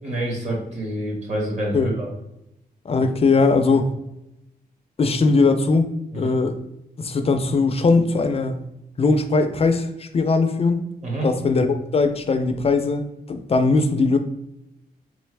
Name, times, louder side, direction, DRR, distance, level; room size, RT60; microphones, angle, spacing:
voice 1, 0.0-2.1 3.7-3.8 6.1-6.3 11.0-11.3, right 1 dB, 45° right, -2 dB, 1.4 m, -27 dB
voice 2, 2.9-3.9 5.0-5.9 6.1-6.6 7.0-8.6 9.0-10.8 11.2-14.2, left 3 dB, 35° left, 7 dB, 0.3 m, -20 dB
3.6 x 3.4 x 3.2 m, 0.87 s
wide cardioid pair, 180°, 16 cm